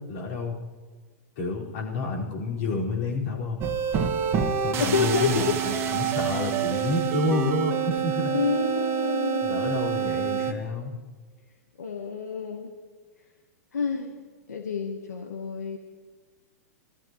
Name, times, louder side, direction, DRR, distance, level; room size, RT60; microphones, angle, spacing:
voice 1, 0.1-0.6 1.4-3.7 4.6-8.4 9.4-10.9, left 3 dB, 55° left, -3 dB, 4.9 m, -29 dB
sound 1, 3.6-10.5, right 8 dB, 30° right, 1.4 m, -27 dB
voice 2, 4.8-5.5 8.3-9.8 10.4-10.6 11.8-12.7 13.7-14.1 14.5-15.8, left 5 dB, 90° left, 4 dB, 1.4 m, -28 dB
20.5 x 14.0 x 3.1 m, 1.4 s
hypercardioid pair, 120°, 9 cm